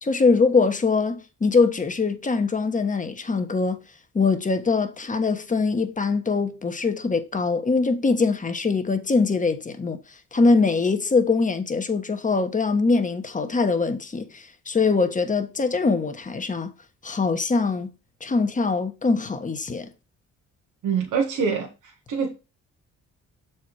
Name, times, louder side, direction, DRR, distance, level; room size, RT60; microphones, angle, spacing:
voice 1, 0.0-3.8 4.1-10.0 10.3-16.7 17.0-17.9 18.2-19.9, left 4 dB, 25° left, 1.3 m, -23 dB
voice 2, 20.8-22.3, right 6 dB, 85° right, 1.6 m, -25 dB
7.1 x 4.5 x 4.8 m
cardioid pair, 90°, 30 cm